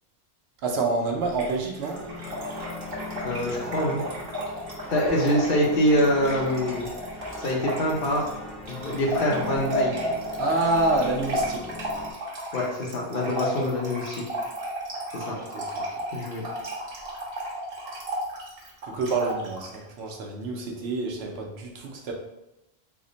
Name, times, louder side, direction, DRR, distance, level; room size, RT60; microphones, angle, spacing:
voice 1, 0.6-2.0 10.4-11.7 15.5-15.9 18.8-22.1, right 2 dB, 85° right, 1 dB, 0.9 m, -27 dB
Trickle dribble / Fill (with liquid), 1.3-19.8, equal, 65° right, 1.1 m, -33 dB
sound 1, 1.9-12.1, left 2 dB, ahead, 0.4 m, -39 dB
voice 2, 3.2-4.0 4.9-6.9 7.4-8.3 8.7-10.1 12.5-14.2 15.1-15.4 16.1-16.4, equal, 65° left, -1 dB, 0.9 m, -25 dB
3.6 x 2.1 x 3.8 m, 0.92 s
omnidirectional pair, 1.0 m